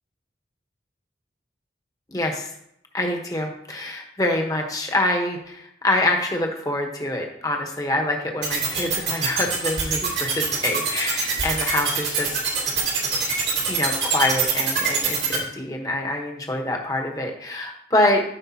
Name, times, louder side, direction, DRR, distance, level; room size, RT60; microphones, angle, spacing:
voice 1, 2.1-2.5 2.9-12.7 13.7-18.2, left 1 dB, 20° left, 2 dB, 1.1 m, -25 dB
sound 1, 8.4-15.4, right 6 dB, 80° right, 2.5 m, -23 dB
13.5 x 5.2 x 2.8 m, 0.75 s
head